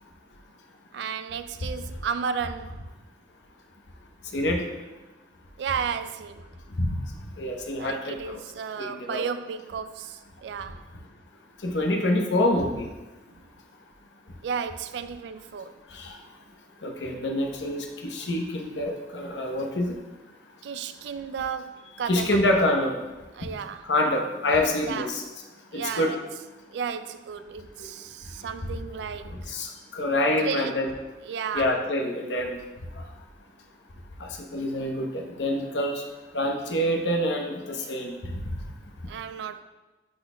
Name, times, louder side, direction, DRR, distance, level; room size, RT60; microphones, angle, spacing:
voice 1, 0.9-2.8 5.6-6.5 7.8-10.8 14.4-15.8 20.6-22.4 23.3-23.9 24.8-25.2 25.7-26.2 26.7-29.5 30.4-30.9 31.2-31.8 39.1-39.6, right 6 dB, 70° right, 0.3 m, -33 dB
voice 2, 7.4-8.4 8.8-9.2 11.6-12.8 15.9-16.1 16.8-20.0 22.1-23.0 23.8-25.2 25.7-26.2 29.5-30.9 31.5-32.6 34.2-36.0 36.3-38.1, left 1 dB, 90° left, 0.9 m, -26 dB
10.5 x 4.2 x 2.2 m
head